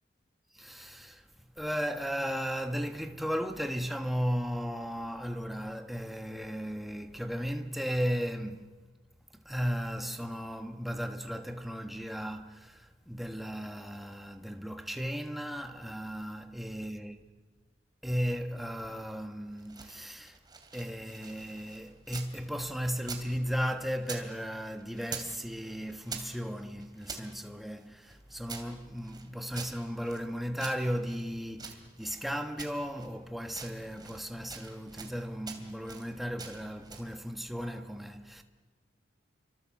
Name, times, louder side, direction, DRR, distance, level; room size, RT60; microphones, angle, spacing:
voice 1, 0.5-1.2 1.6-8.7 9.3-17.2 18.0-20.4 20.7-38.4, equal, ahead, 1.3 m, -35 dB
sound 1, 19.5-22.3 22.6-24.3 24.5-25.4 25.6-27.3 27.8-30.3 30.6-32.2 32.6-33.2 33.5-34.2 34.5-35.2 35.4-36.1 36.4-37.1, right 5 dB, 20° right, 2.9 m, -45 dB
30.0 x 24.5 x 7.5 m
head